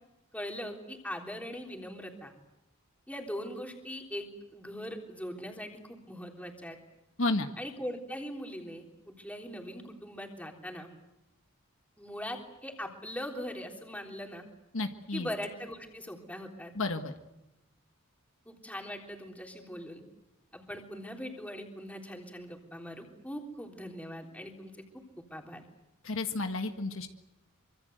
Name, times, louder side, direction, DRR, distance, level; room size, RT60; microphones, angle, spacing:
voice 1, 0.3-2.3 3.1-6.8 7.6-8.8 9.2-10.9 12.0-14.4 15.1-16.7 18.4-20.0 20.5-24.7 25.2-25.6, equal, 5° left, 2 dB, 3.5 m, -41 dB
voice 2, 7.2-7.5 14.7-15.3 16.7-17.1 26.0-27.1, left 2 dB, 65° left, 6 dB, 1.6 m, -31 dB
26.0 x 25.0 x 8.0 m, 0.94 s
head